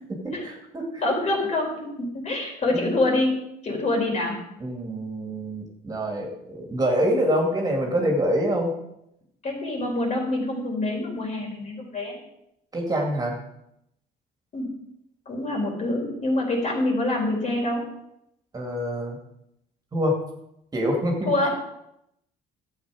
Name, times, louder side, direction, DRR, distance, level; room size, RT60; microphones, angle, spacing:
voice 1, 0.4-0.8 2.7-2.9 4.6-8.8 12.7-13.4 18.5-19.2 19.9-20.1 20.7-21.3, equal, 25° right, 1 dB, 2.4 m, -25 dB
voice 2, 1.0-4.4 9.4-12.2 14.5-14.7 15.3-17.9 21.2-21.5, left 2 dB, 45° left, 0 dB, 4.2 m, -26 dB
12.0 x 8.3 x 5.0 m, 0.81 s
cardioid pair, 110°, 17 cm